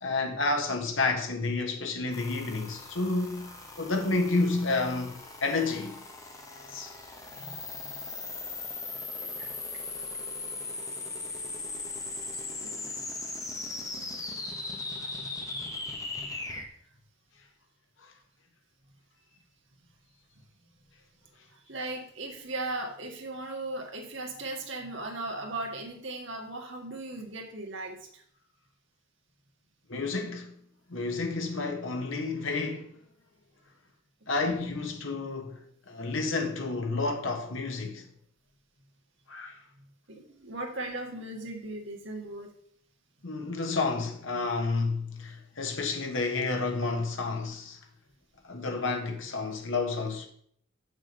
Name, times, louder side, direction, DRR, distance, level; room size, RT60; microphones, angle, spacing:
voice 1, 0.0-6.0 6.7-6.9 18.0-18.1 29.9-30.5 30.9-32.9 34.3-38.1 39.3-39.6 43.2-47.8 48.4-50.3, left 3 dB, 70° left, 1.4 m, -30 dB
sound 1, 2.1-16.7, left 3 dB, 15° left, 1.0 m, -39 dB
voice 2, 9.2-9.6 12.3-12.9 15.2-15.6 21.5-28.2 34.5-34.6 40.1-42.5, right 2 dB, 60° right, 1.7 m, -38 dB
7.1 x 6.4 x 5.3 m
head